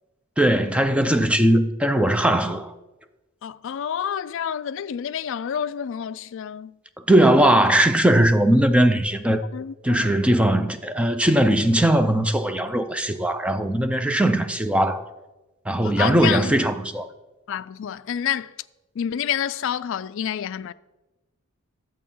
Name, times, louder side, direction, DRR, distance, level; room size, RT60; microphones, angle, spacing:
voice 1, 0.4-2.7 7.1-9.4 9.8-15.1 15.7-17.1, right 1 dB, 5° right, 0.5 m, -19 dB
voice 2, 3.4-6.8 9.5-10.2 15.8-16.5 17.5-18.5 19.0-20.7, left 9 dB, 60° left, 0.3 m, -28 dB
10.5 x 7.6 x 5.4 m
head